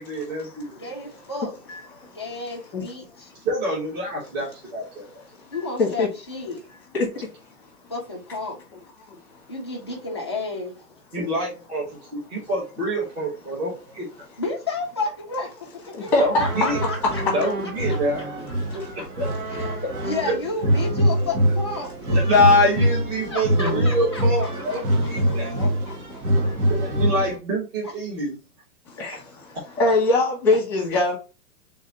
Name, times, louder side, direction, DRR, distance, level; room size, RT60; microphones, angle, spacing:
voice 1, 0.0-0.9 3.4-5.0 11.1-14.1 16.2-16.8 17.3-18.2 18.7-19.3 19.8-19.9 20.2-20.4 22.1-25.7 26.7-28.4, left 1 dB, 25° right, 1.4 m, -25 dB
voice 2, 0.8-1.5 2.1-3.3 5.5-6.6 7.9-8.6 9.5-10.7 14.4-15.5 16.0-17.2 19.0-19.1 19.7-22.2 23.3-24.8 25.3-26.0, left 3 dB, 20° left, 0.4 m, -32 dB
voice 3, 6.9-7.3 15.9-16.4 23.6-23.8 26.4-26.7 28.9-29.4 29.8-31.2, left 2 dB, 5° left, 1.2 m, -22 dB
sound 1, 16.1-27.4, equal, 65° right, 1.8 m, -24 dB
3.6 x 3.1 x 4.0 m
hypercardioid pair, 170°, 46 cm